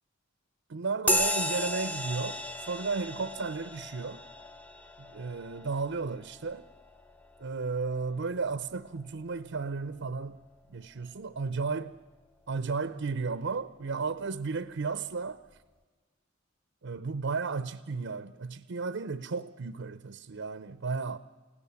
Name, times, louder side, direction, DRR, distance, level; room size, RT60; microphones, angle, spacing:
voice 1, 0.7-4.2 5.0-6.6 7.4-10.4 10.7-12.0 12.5-15.4 16.8-21.2, right 4 dB, 65° right, 0.6 m, -34 dB
sound 1, 1.1-9.0, left 1 dB, 10° left, 0.8 m, -35 dB
29.5 x 17.0 x 7.0 m
head